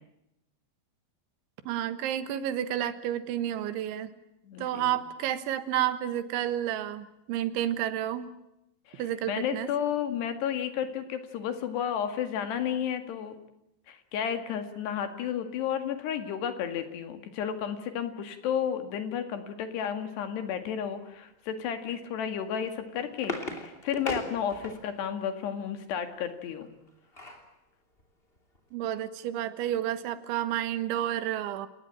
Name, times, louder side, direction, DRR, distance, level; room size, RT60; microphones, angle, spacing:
voice 1, 1.7-4.1 4.6-8.3 9.0-9.7 28.7-31.7, right 11 dB, 85° right, 12 dB, 3.8 m, -30 dB
voice 2, 4.5-5.0 8.9-9.0 9.3-13.4 13.9-26.7, left 8 dB, 70° left, 8 dB, 4.0 m, -32 dB
sound 1, 22.6-25.1 26.6-27.5 28.0-28.1 28.4-28.6, left 2 dB, 15° left, 2.4 m, -38 dB
29.5 x 19.0 x 8.8 m, 0.85 s
omnidirectional pair, 5.2 m